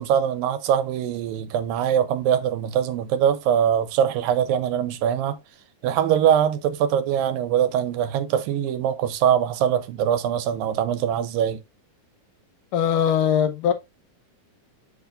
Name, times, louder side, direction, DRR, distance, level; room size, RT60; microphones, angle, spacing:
voice 1, 0.0-5.4 5.8-11.6, right 9 dB, 85° right, 2.4 m, -22 dB
voice 2, 12.7-13.7, left 8 dB, 75° left, 2.3 m, -20 dB
7.3 x 6.9 x 2.4 m
omnidirectional pair, 4.1 m